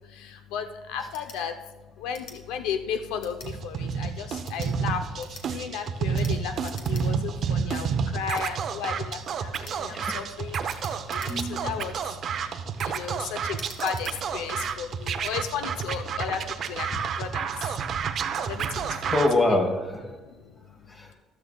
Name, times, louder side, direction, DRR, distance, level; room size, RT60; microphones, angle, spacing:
voice 1, 0.0-19.1 19.5-19.6 20.1-21.1, left 7 dB, 90° left, 8 dB, 0.7 m, -35 dB
sound 1, 1.1-1.4 2.1-2.4 3.2-3.5 4.3-4.7 5.2-5.5 6.1-6.4 6.6-7.1 7.4-7.5 8.3-8.5 9.6-9.8 10.7-11.8 12.3-12.6 13.5-14.2, left 4 dB, 50° left, 1.9 m, -46 dB
Scratching (performance technique), 3.4-19.3, right 6 dB, 40° right, 0.6 m, -30 dB
voice 2, 11.3-11.6 15.2-15.3 19.1-20.1 20.9-21.1, left 2 dB, 20° left, 3 dB, 1.7 m, -25 dB
14.0 x 12.5 x 2.4 m, 1.2 s
cardioid pair, 150°, 0 cm